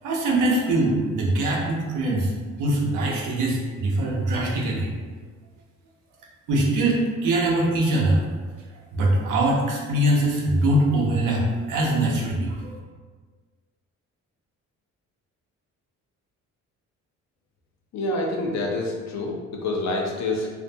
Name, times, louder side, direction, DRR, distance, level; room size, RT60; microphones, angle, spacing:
voice 1, 0.0-2.3 2.6-4.9 6.5-8.2 8.9-12.7, right 1 dB, 90° right, -2 dB, 0.6 m, -22 dB
voice 2, 17.9-20.5, left 2 dB, 65° left, 0 dB, 0.6 m, -27 dB
2.5 x 2.1 x 2.6 m, 1.5 s
cardioid pair, 90°, 30 cm